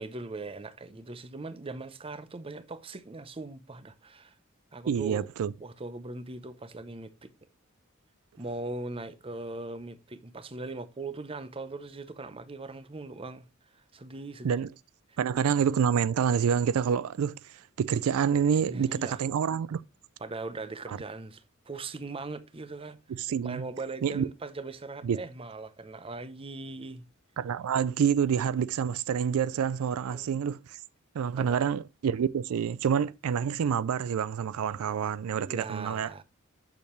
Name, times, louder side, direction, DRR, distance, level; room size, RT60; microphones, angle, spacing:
voice 1, 0.0-4.3 4.7-5.3 5.6-7.3 8.4-13.5 13.9-14.6 15.1-15.2 18.7-19.2 20.2-23.0 23.4-27.0 30.1-30.3 31.3-31.7 35.5-36.2, right 3 dB, 25° right, 0.6 m, -40 dB
voice 2, 4.9-5.5 14.4-14.7 15.2-19.8 20.9-21.0 23.1-23.6 24.0-24.3 25.0-25.2 27.4-30.8 31.1-36.1, right 7 dB, 80° right, 0.4 m, -27 dB
8.3 x 6.5 x 3.1 m
head